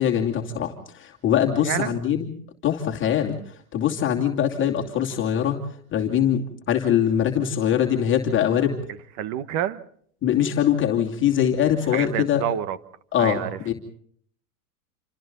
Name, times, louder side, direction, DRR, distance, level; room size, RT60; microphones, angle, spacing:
voice 1, 0.0-2.3 2.6-5.6 5.9-8.8 10.2-12.4 13.1-13.4 13.7-13.8, left 9 dB, 25° left, 1 dB, 2.6 m, -22 dB
voice 2, 1.6-2.0 9.2-9.8 11.9-12.8 13.2-13.6, right 10 dB, 40° right, 14 dB, 1.4 m, -28 dB
28.0 x 26.0 x 4.0 m, 0.62 s
supercardioid pair, 140°, 45 cm